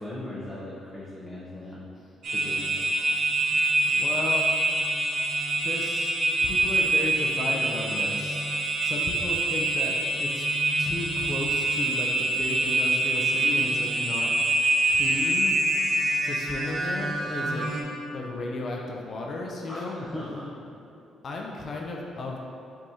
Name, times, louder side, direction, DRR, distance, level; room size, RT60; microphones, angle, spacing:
voice 1, 0.0-1.9 2.3-2.8 19.7-20.5, left 1 dB, 10° left, -8 dB, 0.7 m, -38 dB
sound 1, 2.2-17.8, right 2 dB, 65° right, 0.7 m, -25 dB
voice 2, 3.8-4.5 5.6-6.1 6.4-8.4 8.8-10.5 10.8-14.3 14.9-15.6 16.0-17.7 18.1-20.0 21.2-22.4, left 3 dB, 50° left, -1 dB, 0.5 m, -34 dB
5.3 x 3.5 x 2.8 m, 2.8 s
cardioid pair, 90°, 0 cm